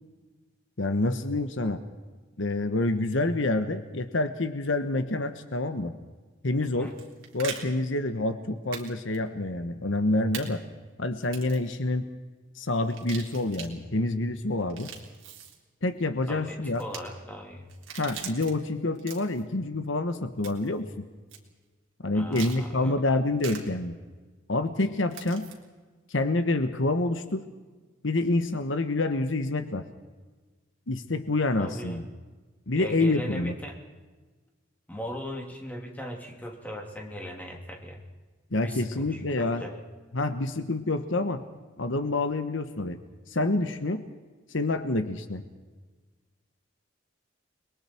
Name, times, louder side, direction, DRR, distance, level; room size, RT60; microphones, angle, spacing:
voice 1, 0.8-1.8 2.4-5.9 6.4-6.9 7.3-10.6 11.0-12.1 12.6-14.9 15.8-16.8 18.0-21.1 22.0-23.9 24.5-25.5 26.1-27.4 28.0-29.8 30.9-32.0 32.7-33.5 38.5-39.6 40.1-41.4 41.8-43.0 43.3-44.0 44.5-45.4, left 2 dB, 70° left, 9 dB, 1.2 m, -27 dB
sound 1, 6.8-7.6 8.7-8.9 9.1-9.2 10.3-10.5 11.2-11.6 12.9-13.7 14.6-15.6 16.7-17.0 17.7-18.5 18.9-19.4 20.4-20.7 21.3-21.4 22.3-22.6 23.4-23.6 25.1-25.5, right 8 dB, 75° right, 3.7 m, -40 dB
voice 2, 16.3-17.7 22.1-23.0 31.6-32.1 32.7-33.8 34.9-38.0 38.6-39.8, equal, 10° left, 0 dB, 2.8 m, -39 dB
29.5 x 22.0 x 4.5 m, 1.3 s
head